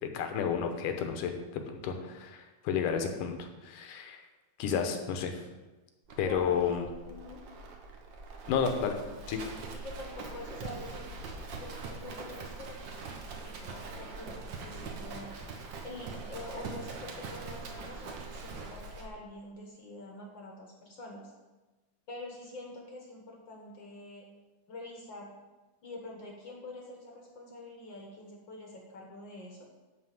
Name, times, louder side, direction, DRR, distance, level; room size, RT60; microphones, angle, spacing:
voice 1, 0.0-4.2 4.6-5.3 6.2-6.8 8.5-9.0 9.3-9.4, left 7 dB, 85° left, 6 dB, 2.5 m, -31 dB
Livestock farm animals working animals, 6.1-19.1, right 3 dB, 75° right, 1.0 m, -43 dB
voice 2, 6.2-7.4 9.7-11.1 11.5-15.3 15.8-21.3 22.1-24.3 24.7-25.4 25.8-29.6, left 2 dB, 55° left, 0 dB, 1.4 m, -46 dB
11.0 x 4.2 x 7.5 m, 1.2 s
omnidirectional pair, 3.7 m